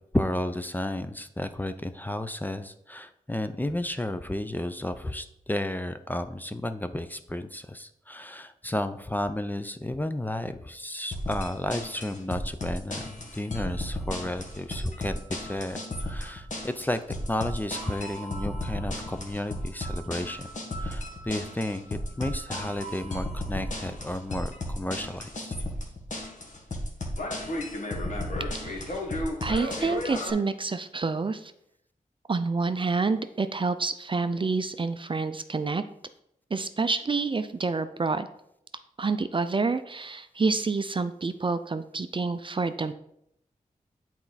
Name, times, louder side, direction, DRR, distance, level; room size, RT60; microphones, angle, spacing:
voice 1, 0.1-17.0 17.3-20.5 20.8-25.5, left 1 dB, 10° left, 10 dB, 0.5 m, -32 dB
sound 1, 11.1-30.3, left 1 dB, 60° left, 1.5 m, -34 dB
voice 2, 28.5-29.0 29.4-31.5 32.3-35.8 36.5-38.3 39.0-42.9, right 4 dB, 35° right, 10 dB, 0.5 m, -28 dB
8.4 x 4.4 x 4.1 m, 0.74 s
cardioid pair, 60°, 15 cm